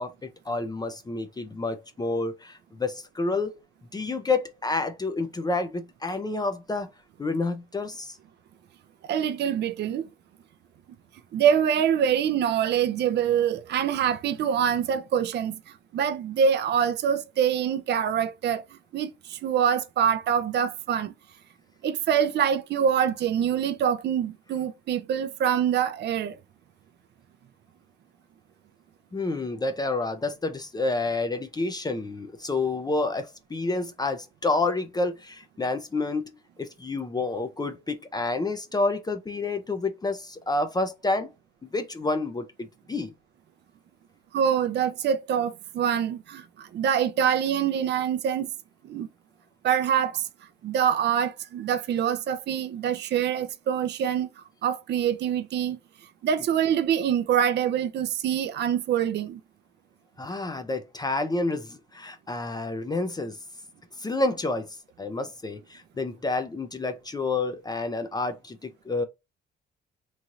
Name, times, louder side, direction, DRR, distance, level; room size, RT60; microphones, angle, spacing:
voice 1, 0.0-3.6 3.9-6.9 7.2-8.2 29.1-36.2 36.6-41.3 41.6-43.1 60.2-63.4 64.0-69.0, left 3 dB, 20° left, 0.5 m, -29 dB
voice 2, 9.1-10.1 11.3-15.6 15.9-18.6 18.9-21.1 21.8-26.4 44.3-48.5 48.9-49.1 49.6-50.3 50.6-54.3 54.6-55.8 56.2-59.4, right 8 dB, 60° right, 0.5 m, -25 dB
3.1 x 2.7 x 2.5 m
cardioid pair, 90°, 20 cm